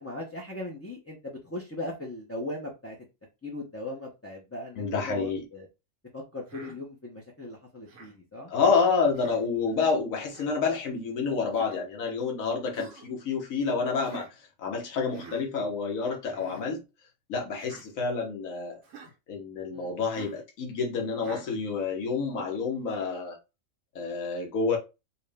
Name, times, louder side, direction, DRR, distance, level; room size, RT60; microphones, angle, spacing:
voice 1, 0.0-3.0 3.4-5.7 6.1-8.5 19.7-19.9, left 1 dB, 15° left, 0.5 m, -38 dB
voice 2, 4.8-5.4 8.5-14.3 14.6-16.8 17.3-18.8 19.3-23.4 23.9-24.8, left 5 dB, 85° left, 1.3 m, -28 dB
Human voice, 6.5-6.8 7.9-8.2 9.1-9.4 10.3-10.5 11.5-11.8 12.7-13.1 14.0-14.3 15.1-15.4 16.3-16.6 17.6-17.9 18.8-19.1 20.1-20.4 21.2-21.5, right 4 dB, 75° right, 1.3 m, -47 dB
4.4 x 2.1 x 3.4 m
omnidirectional pair, 1.4 m